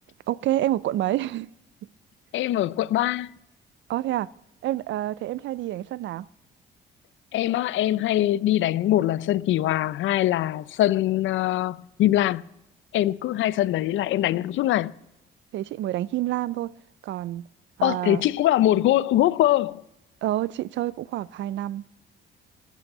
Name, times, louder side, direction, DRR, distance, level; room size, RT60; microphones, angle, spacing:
voice 1, 0.3-1.5 3.9-4.3 4.6-6.3 15.5-16.8 17.0-17.5 17.8-18.2 20.2-21.8, right 14 dB, 70° right, 0.4 m, -28 dB
voice 2, 2.3-3.3 7.3-12.4 12.9-14.9 17.8-19.8, left 14 dB, 75° left, 0.5 m, -22 dB
16.0 x 8.4 x 8.7 m
cardioid pair, 90°, 20 cm